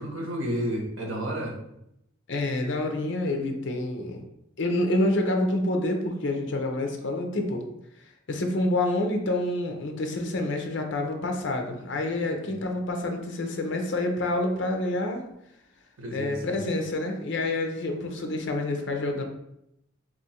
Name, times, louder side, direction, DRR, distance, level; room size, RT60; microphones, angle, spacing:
voice 1, 0.0-1.6 12.4-12.5 16.0-16.6, equal, 75° right, 0 dB, 0.9 m, -31 dB
voice 2, 2.3-4.2 4.6-7.6 8.3-15.2 16.1-19.2, left 1 dB, 60° left, 4 dB, 0.6 m, -27 dB
3.0 x 2.5 x 4.2 m, 0.80 s
head